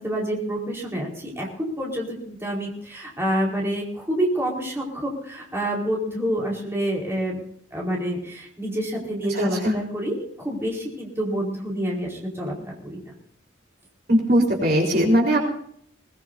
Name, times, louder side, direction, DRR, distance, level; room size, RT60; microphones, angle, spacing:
voice 1, 0.0-7.4 7.7-13.1, right 1 dB, 15° right, -2 dB, 4.6 m, -28 dB
voice 2, 9.3-9.7 14.1-15.4, equal, 50° right, -1 dB, 4.3 m, -20 dB
22.0 x 21.0 x 2.8 m, 0.65 s
head